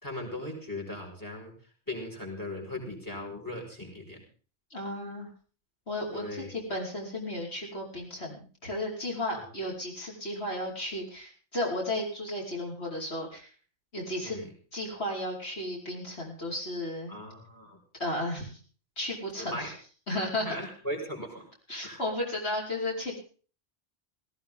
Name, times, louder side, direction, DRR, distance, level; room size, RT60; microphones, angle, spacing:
voice 1, 0.0-1.5 1.9-4.2 6.1-6.5 9.3-9.4 14.2-14.5 17.1-17.8 19.4-19.7 20.5-21.5 21.8-22.0, left 1 dB, 20° left, 2 dB, 5.3 m, -38 dB
voice 2, 4.7-5.3 5.9-13.5 13.9-14.4 14.7-17.1 18.0-18.6 19.0-19.7 20.1-20.5 21.7-23.2, left 1 dB, 85° left, -2 dB, 5.6 m, -34 dB
17.5 x 17.0 x 3.8 m, 0.40 s
omnidirectional pair, 1.1 m